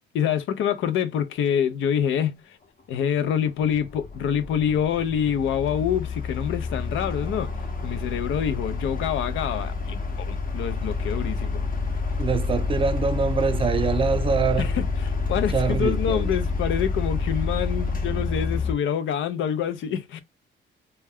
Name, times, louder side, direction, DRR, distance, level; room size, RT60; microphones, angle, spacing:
voice 1, 0.1-2.6 2.9-7.5 7.8-11.6 14.6-20.2, left 8 dB, 75° left, 0.5 m, -26 dB
sound 1, 3.0-3.1 3.6-18.7, left 3 dB, 45° left, 0.8 m, -28 dB
voice 2, 12.2-14.7 15.5-16.3, right 5 dB, 25° right, 0.4 m, -24 dB
2.2 x 2.2 x 3.4 m
cardioid pair, 90°, 20 cm